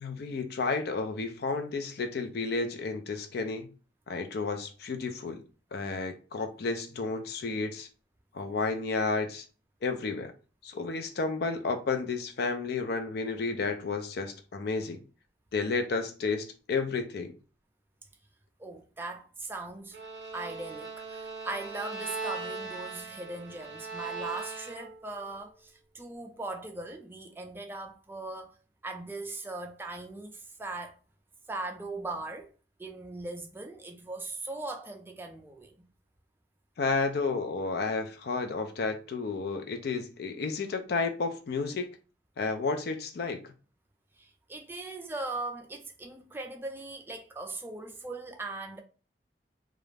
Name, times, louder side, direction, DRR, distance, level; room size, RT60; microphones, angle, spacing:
voice 1, 0.0-3.7 4.1-5.4 5.7-7.9 8.3-9.4 9.8-10.3 10.6-15.0 15.5-17.3 36.8-41.9 42.4-43.5, left 4 dB, 60° left, 0.4 m, -31 dB
voice 2, 18.6-20.0 20.3-28.5 28.8-30.9 31.5-32.5 32.8-35.8 44.2-48.8, right 2 dB, 10° right, 0.4 m, -39 dB
Bowed string instrument, 19.9-25.1, right 4 dB, 75° right, 0.5 m, -39 dB
2.4 x 2.0 x 3.2 m
head